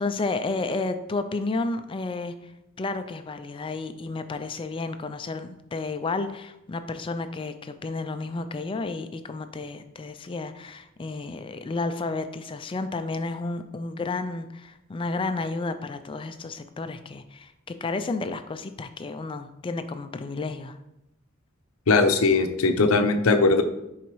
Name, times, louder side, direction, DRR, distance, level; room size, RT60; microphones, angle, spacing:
voice 1, 0.0-2.5 2.8-20.8, left 3 dB, 25° left, 9 dB, 0.3 m, -31 dB
voice 2, 21.9-23.6, left 3 dB, 90° left, 7 dB, 0.6 m, -20 dB
10.5 x 4.0 x 3.1 m, 0.88 s
head